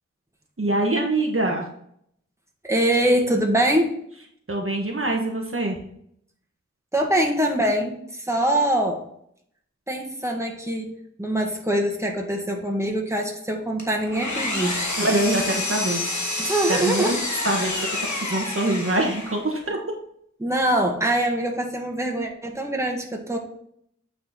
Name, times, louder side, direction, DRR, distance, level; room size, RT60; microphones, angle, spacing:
voice 1, 0.6-1.7 4.5-5.8 15.0-16.0 16.7-17.2 17.4-19.8, right 2 dB, 45° right, 0 dB, 1.4 m, -24 dB
voice 2, 2.6-3.9 6.9-9.0 9.9-14.9 16.4-17.1 20.4-23.4, right 1 dB, 10° right, 0 dB, 1.7 m, -23 dB
Engine, 13.8-19.5, left 2 dB, 80° left, 1.5 m, -28 dB
8.9 x 4.3 x 4.2 m, 0.69 s
wide cardioid pair, 40°, 29 cm